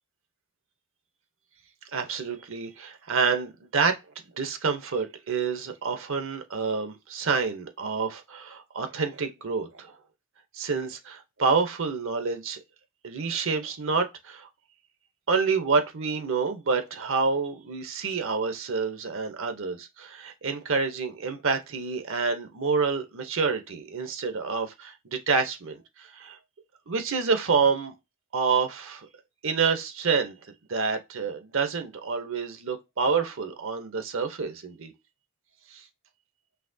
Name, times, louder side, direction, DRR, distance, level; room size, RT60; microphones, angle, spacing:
voice 1, 1.9-4.0 4.4-9.9 10.5-12.6 13.0-14.5 15.3-26.4 26.9-28.0 28.3-29.1 29.4-30.4 30.7-34.9 35.7-35.8, right 5 dB, 65° right, 0.8 m, -28 dB
5.7 x 2.9 x 2.7 m
head